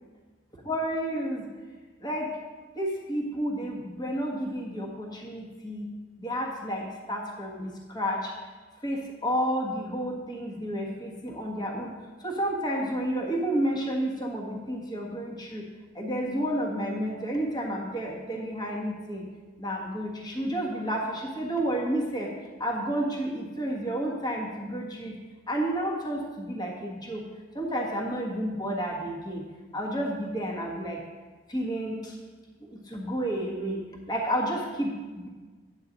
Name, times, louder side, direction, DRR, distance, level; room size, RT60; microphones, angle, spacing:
voice 1, 0.6-1.5 2.0-2.4 2.7-5.9 6.2-8.4 8.8-15.7 15.9-19.2 19.6-22.3 22.6-25.2 25.5-27.2 27.5-29.5 29.7-31.0 31.5-32.2 32.7-33.8 34.1-35.3, equal, 20° left, -1 dB, 1.4 m, -31 dB
9.8 x 8.6 x 4.0 m, 1.4 s
head